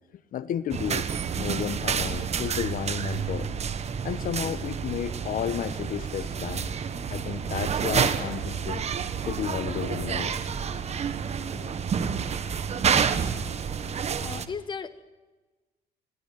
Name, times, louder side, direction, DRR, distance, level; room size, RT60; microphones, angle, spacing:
voice 1, 0.3-1.1 1.4-3.5 4.0-6.8 7.1-8.9 9.2-10.4 10.7-10.9, left 9 dB, 55° left, 14 dB, 0.9 m, -32 dB
sound 1, 0.7-14.5, right 7 dB, 40° right, 1.2 m, -29 dB
voice 2, 14.2-15.0, left 5 dB, 25° left, 14 dB, 1.1 m, -38 dB
21.0 x 16.0 x 9.0 m, 1.2 s
cardioid pair, 110°, 17 cm